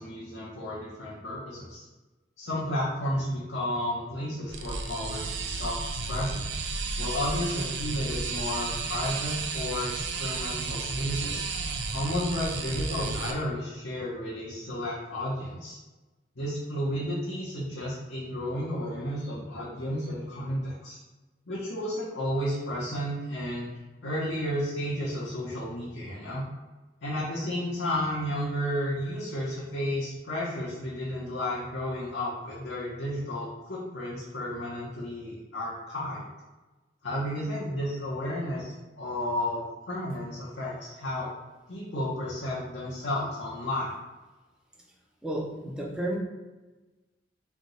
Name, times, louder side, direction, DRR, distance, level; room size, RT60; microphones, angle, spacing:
voice 1, 0.0-1.8 2.4-5.8 6.1-6.4 7.0-11.4 11.9-15.8 16.4-21.0 21.5-23.7 24.0-26.4 27.0-36.2 37.0-41.3 41.7-43.9, left 1 dB, 75° left, -7 dB, 0.9 m, -32 dB
sound 1, 4.5-13.3, right 4 dB, 70° right, 0.5 m, -33 dB
voice 2, 45.2-46.2, right 1 dB, 5° right, -2 dB, 0.7 m, -32 dB
3.5 x 2.8 x 4.0 m, 1.2 s
head